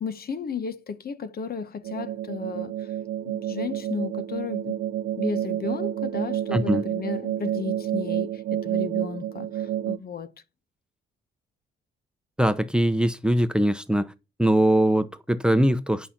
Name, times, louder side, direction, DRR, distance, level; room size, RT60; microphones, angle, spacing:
voice 1, 0.0-2.9 3.2-4.8 5.2-10.3, left 6 dB, 50° left, 1.2 m, -34 dB
sound 1, 1.8-10.0, right 11 dB, 65° right, 0.6 m, -29 dB
voice 2, 6.5-6.8 12.4-14.1 14.4-16.1, right 1 dB, 5° right, 0.9 m, -22 dB
11.0 x 5.7 x 6.0 m
cardioid pair, 90°, 20 cm